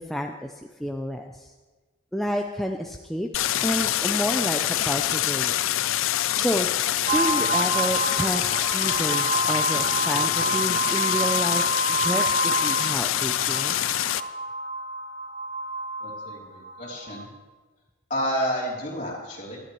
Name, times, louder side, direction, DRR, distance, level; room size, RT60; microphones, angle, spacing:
voice 1, 0.1-1.5 2.1-3.3 3.6-5.5 6.3-6.7 7.1-13.8, equal, ahead, 2 dB, 0.4 m, -30 dB
Stream, 3.3-14.2, left 12 dB, 75° left, 0.4 m, -25 dB
sound 1, 7.1-17.2, right 2 dB, 40° right, 1.5 m, -28 dB
voice 2, 16.0-17.3 18.1-19.6, equal, 35° left, -3 dB, 3.1 m, -30 dB
19.5 x 13.0 x 3.1 m, 1.3 s
head